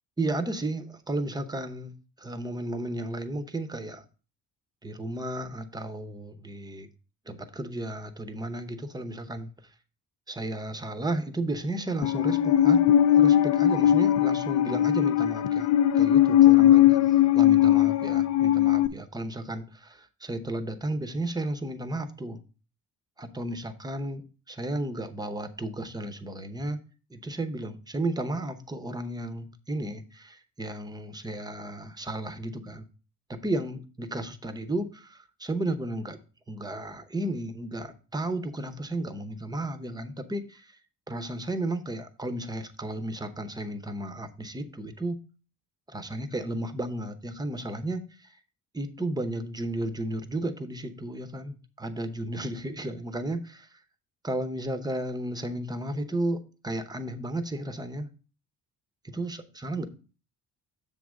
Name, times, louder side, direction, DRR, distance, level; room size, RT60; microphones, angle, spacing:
voice 1, 0.2-4.0 4.8-6.9 7.3-9.5 10.3-22.4 23.2-26.8 27.1-32.9 33.3-36.2 36.5-40.8 41.1-45.2 45.9-48.4 48.7-53.8 54.2-58.1 59.0-59.9, right 1 dB, 10° right, 10 dB, 0.7 m, -33 dB
Musical instrument, 12.0-18.9, left 11 dB, 50° left, 0.4 m, -20 dB
7.0 x 3.6 x 6.3 m, 0.36 s
cardioid pair, 115°, 36 cm